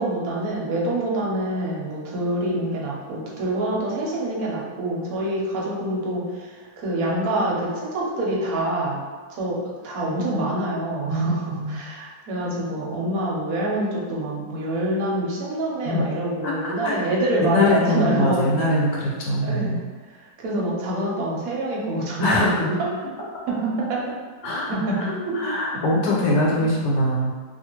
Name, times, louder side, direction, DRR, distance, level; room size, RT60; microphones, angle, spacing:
voice 1, 0.0-9.0 9.3-18.5 19.4-19.8 20.4-22.9 23.5-24.0 24.7-25.4 26.5-26.6, right 1 dB, 65° right, -4 dB, 1.1 m, -26 dB
voice 2, 11.1-11.8 15.9-16.0 16.4-17.0 17.4-19.8 22.2-22.6 24.4-27.3, left 1 dB, 85° left, -4 dB, 1.4 m, -23 dB
3.0 x 2.5 x 2.9 m, 1.4 s
omnidirectional pair, 1.8 m